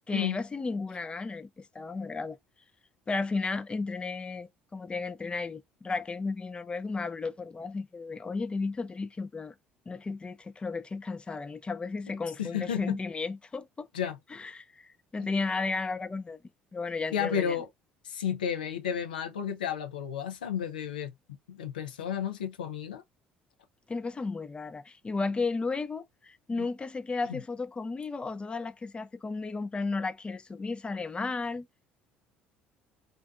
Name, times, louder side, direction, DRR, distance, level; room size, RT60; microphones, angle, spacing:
voice 1, 0.1-2.4 3.1-9.5 9.9-13.9 14.3-16.4 16.7-17.6 23.9-31.7, left 4 dB, 20° left, 0.4 m, -34 dB
voice 2, 12.4-13.0 13.9-14.2 17.1-17.7 18.0-21.1 21.5-23.0 26.6-26.7 27.3-27.4, left 8 dB, 85° left, 0.4 m, -32 dB
2.5 x 2.2 x 2.4 m
hypercardioid pair, 60°, 5 cm